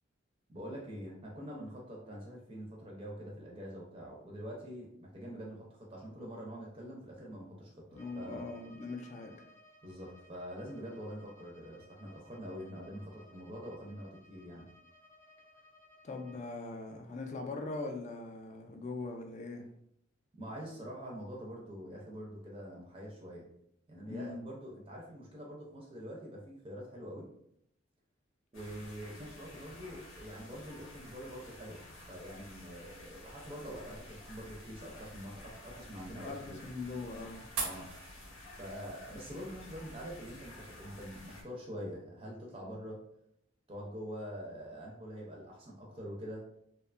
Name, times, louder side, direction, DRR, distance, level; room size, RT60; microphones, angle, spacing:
voice 1, 0.5-8.4 9.8-14.7 20.4-23.5 23.9-27.3 28.5-36.6 37.6-37.9 38.5-43.0 43.7-46.5, equal, 25° right, -2 dB, 0.4 m, -45 dB
voice 2, 7.9-9.4 16.0-19.7 24.1-24.5 36.2-37.5, left 3 dB, 35° left, 4 dB, 0.3 m, -41 dB
Bowed string instrument, 7.9-16.5, left 1 dB, 15° left, 0.7 m, -61 dB
sound 1, 28.5-41.4, left 1 dB, 85° left, 0.8 m, -52 dB
sound 2, 32.8-41.1, right 5 dB, 85° right, 0.6 m, -48 dB
2.7 x 2.2 x 2.4 m, 0.72 s
head